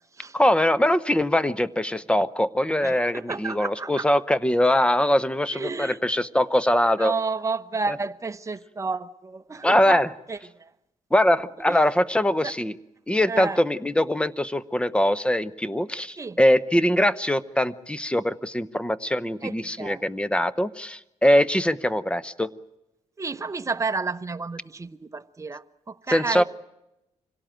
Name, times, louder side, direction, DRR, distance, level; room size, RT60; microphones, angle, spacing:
voice 1, 0.3-7.1 7.9-8.0 9.6-10.1 11.1-12.7 13.1-22.5 26.1-26.4, left 1 dB, 10° left, 16 dB, 0.8 m, -22 dB
voice 2, 2.8-4.0 5.5-6.0 7.0-10.0 10.3-10.7 12.4-12.5 13.3-13.6 16.2-16.4 19.4-20.0 23.2-26.4, right 4 dB, 25° right, 11 dB, 0.9 m, -31 dB
25.5 x 17.5 x 9.0 m, 0.91 s
cardioid pair, 100°, 13 cm